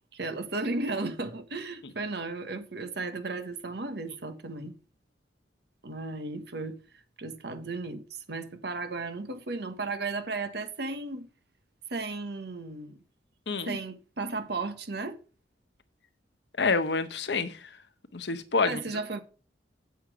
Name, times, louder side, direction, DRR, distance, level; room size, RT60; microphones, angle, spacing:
voice 1, 0.1-4.7 5.8-6.8 7.2-11.3 11.9-13.0 13.6-15.2 18.6-19.2, right 3 dB, 60° right, 1.4 m, -35 dB
voice 2, 13.5-13.8 16.6-17.6 18.1-18.8, left 4 dB, 70° left, 0.9 m, -27 dB
8.4 x 7.1 x 4.9 m
head